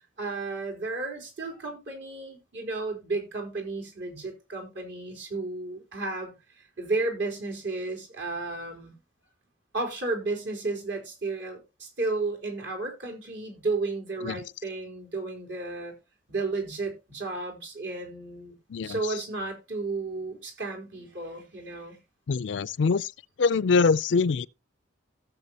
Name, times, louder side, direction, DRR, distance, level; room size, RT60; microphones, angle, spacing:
voice 1, 0.2-8.9 9.7-15.9 16.3-18.5 18.8-22.0, right 3 dB, 70° right, 3.9 m, -33 dB
voice 2, 22.3-23.1 23.4-24.5, left 4 dB, 70° left, 0.4 m, -24 dB
16.5 x 7.2 x 2.8 m
head